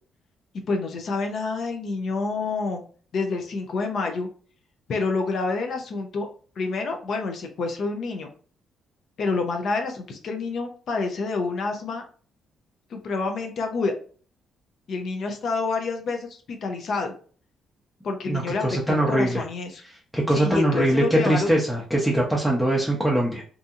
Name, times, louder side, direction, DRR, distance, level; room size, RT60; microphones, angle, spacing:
voice 1, 0.7-2.8 3.1-4.3 4.9-6.3 6.6-8.3 9.2-12.1 12.9-13.9 14.9-17.1 18.0-19.8 20.3-21.5, left 3 dB, 60° left, 4 dB, 0.5 m, -28 dB
voice 2, 18.3-19.4 20.1-23.4, right 1 dB, ahead, -3 dB, 0.6 m, -22 dB
2.7 x 2.6 x 2.4 m, 0.42 s
cardioid pair, 90°, 0 cm